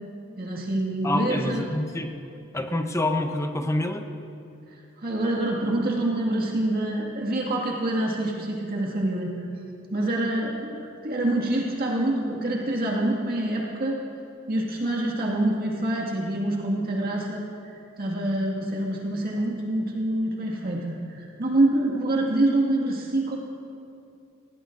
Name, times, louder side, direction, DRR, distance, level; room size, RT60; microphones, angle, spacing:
voice 1, 0.4-1.7 5.0-9.5 9.9-10.8 11.0-14.0 14.5-17.4 18.0-23.4, right 1 dB, 50° right, -2 dB, 1.9 m, -26 dB
voice 2, 1.0-4.1, left 1 dB, 15° left, 5 dB, 0.8 m, -27 dB
20.5 x 17.0 x 2.6 m, 2.6 s
head